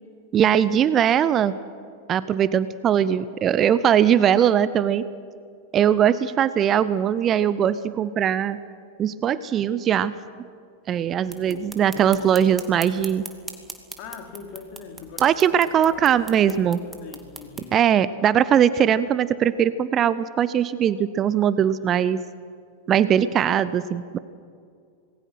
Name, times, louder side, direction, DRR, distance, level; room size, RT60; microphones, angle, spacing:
voice 1, 0.3-1.5 2.1-5.1 5.7-8.6 9.0-10.2 10.9-13.2 15.2-16.8 17.7-22.2 22.9-24.2, right 9 dB, 30° right, 17 dB, 0.7 m, -20 dB
sound 1, 11.3-17.7, right 3 dB, 10° right, 2.6 m, -41 dB
voice 2, 11.5-12.6 14.0-15.3 15.6-16.1 16.5-17.8, left 6 dB, 45° left, 4 dB, 3.3 m, -42 dB
27.0 x 20.5 x 5.9 m, 2.3 s
figure-of-eight pair, 90°, 0 cm